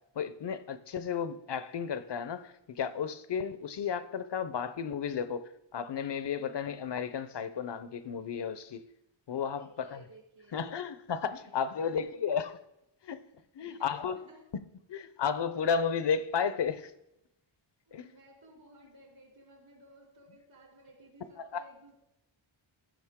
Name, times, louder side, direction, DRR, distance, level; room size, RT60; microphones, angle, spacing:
voice 1, 0.1-8.8 9.3-10.0 10.5-12.6 13.0-13.2 13.5-14.2 14.9-16.9 17.9-18.0 21.5-21.6, left 7 dB, 55° left, 0.7 m, -33 dB
voice 2, 9.5-10.8 11.4-12.1 13.6-14.5 17.8-21.9, right 1 dB, 60° right, 3.9 m, -57 dB
14.0 x 6.1 x 3.6 m
wide cardioid pair, 75°, 50 cm